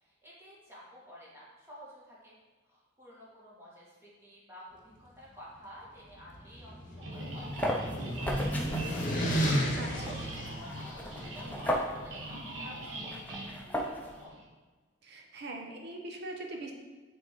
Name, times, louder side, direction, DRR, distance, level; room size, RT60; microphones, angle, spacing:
voice 1, 0.0-2.3 2.7-7.5 7.9-9.0 9.9-14.3, equal, 15° right, -7 dB, 1.8 m, -52 dB
sound 1, 6.1-11.3, equal, 45° left, 1.1 m, -33 dB
sound 2, 7.0-14.5, right 1 dB, 85° right, 1.2 m, -43 dB
sound 3, 7.1-14.2, equal, 10° left, 0.7 m, -37 dB
voice 2, 9.7-10.2 15.0-16.7, right 2 dB, 60° right, 1 dB, 0.9 m, -42 dB
5.8 x 3.7 x 4.6 m, 1.3 s
head